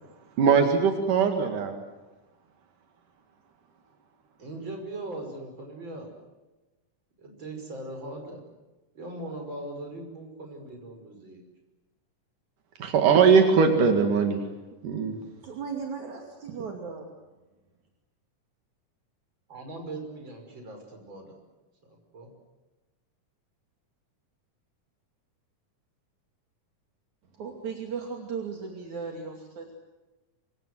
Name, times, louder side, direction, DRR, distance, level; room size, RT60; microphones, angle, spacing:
voice 1, 0.4-1.8 12.8-14.4 14.8-15.2, right 6 dB, 80° right, 5 dB, 3.7 m, -20 dB
voice 2, 4.4-6.1 7.2-8.4 8.9-11.4 19.5-21.4 22.1-22.3, right 2 dB, 35° right, 4 dB, 6.3 m, -39 dB
voice 3, 15.4-17.1 27.3-29.7, right 5 dB, 65° right, 2 dB, 3.9 m, -36 dB
26.0 x 25.5 x 7.8 m, 1.1 s
omnidirectional pair, 3.6 m